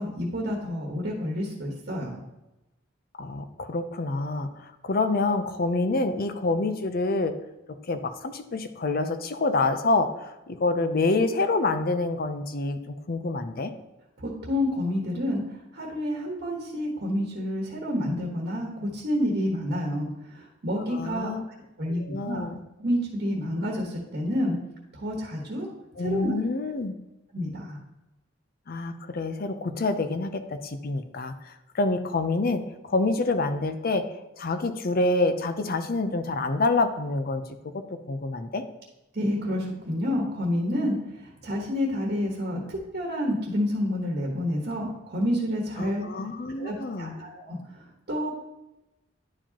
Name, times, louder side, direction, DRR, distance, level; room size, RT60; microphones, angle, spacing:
voice 1, 0.0-2.2 14.2-15.4 15.7-20.1 20.3-21.3 21.8-22.5 22.8-24.5 25.0-25.7 26.0-26.3 27.3-27.8 39.1-46.0 46.6-47.6 48.1-48.3, left 1 dB, 55° right, -1 dB, 1.3 m, -29 dB
voice 2, 3.2-7.3 7.9-13.7 20.8-21.4 21.9-22.6 26.0-26.9 28.7-34.0 34.4-37.4 38.1-38.6 45.8-47.2, left 3 dB, 50° left, 9 dB, 0.6 m, -27 dB
10.5 x 4.8 x 2.9 m, 0.96 s
head